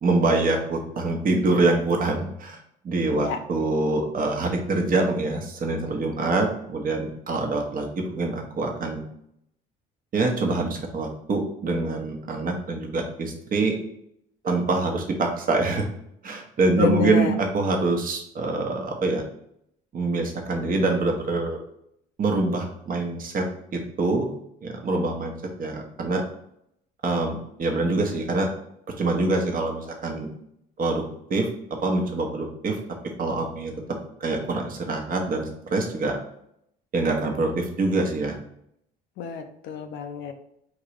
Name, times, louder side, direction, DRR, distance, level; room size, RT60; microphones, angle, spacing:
voice 1, 0.0-2.6 2.8-9.0 10.1-13.8 14.4-15.9 16.2-19.2 19.9-21.6 22.2-23.5 23.7-24.3 24.6-25.3 25.6-26.2 27.0-28.5 29.0-30.3 30.8-31.0 31.3-32.8 33.2-33.7 34.2-36.2 36.9-38.4, right 3 dB, 40° right, 2 dB, 1.1 m, -25 dB
voice 2, 16.8-17.3 39.2-40.3, left 8 dB, 65° left, 6 dB, 0.7 m, -28 dB
3.8 x 2.9 x 4.8 m, 0.73 s
hypercardioid pair, 65°, 21 cm